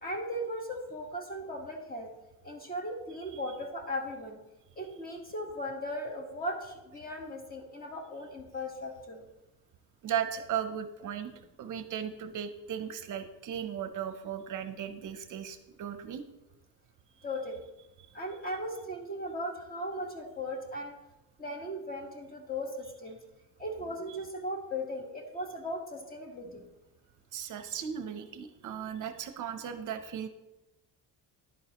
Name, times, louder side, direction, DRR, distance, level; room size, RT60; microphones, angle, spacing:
voice 1, 0.0-2.1 2.4-4.4 4.8-9.3 17.2-17.6 18.1-20.9 21.4-23.2 23.6-26.6, equal, 25° left, 2 dB, 1.3 m, -37 dB
voice 2, 10.0-11.3 11.6-16.2 27.3-30.3, right 8 dB, 55° right, 9 dB, 0.6 m, -36 dB
10.5 x 9.3 x 2.9 m, 0.97 s
cardioid pair, 165°, 37 cm